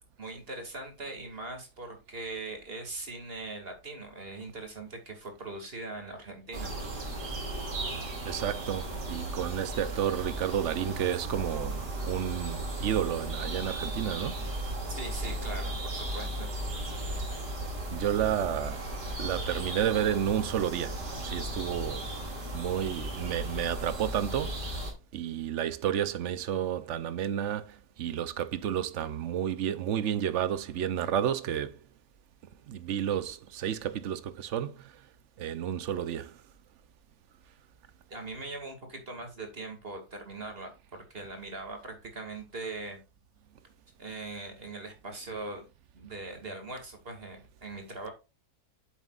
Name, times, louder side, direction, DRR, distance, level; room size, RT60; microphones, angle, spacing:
voice 1, 0.2-6.7 14.9-16.5 38.1-40.7 41.1-43.0 44.0-45.6 45.9-48.1, right 2 dB, 35° right, 2.5 m, -41 dB
sound 1, 6.5-24.9, right 1 dB, 85° right, 3.0 m, -36 dB
voice 2, 8.2-14.5 17.9-18.8 19.2-22.1 22.5-24.6 25.1-31.7 32.7-34.9 35.4-36.4, right 10 dB, 60° right, 0.8 m, -31 dB
8.8 x 7.4 x 2.4 m
omnidirectional pair, 1.7 m